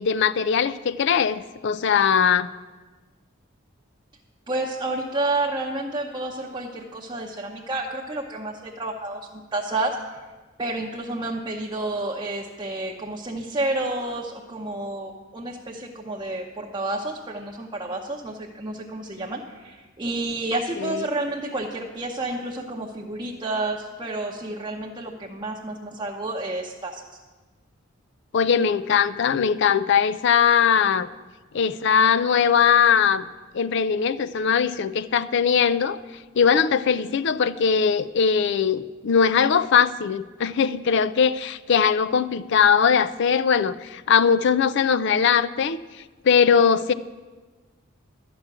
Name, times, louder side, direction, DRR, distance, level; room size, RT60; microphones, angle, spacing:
voice 1, 0.0-2.5 20.8-21.0 28.3-31.1 31.5-33.3 33.5-36.0 36.3-45.8 46.2-46.9, left 7 dB, 60° left, 15 dB, 0.4 m, -20 dB
voice 2, 4.5-10.0 10.6-27.0, right 2 dB, 20° right, -2 dB, 0.8 m, -30 dB
12.0 x 6.0 x 8.9 m, 1.3 s
head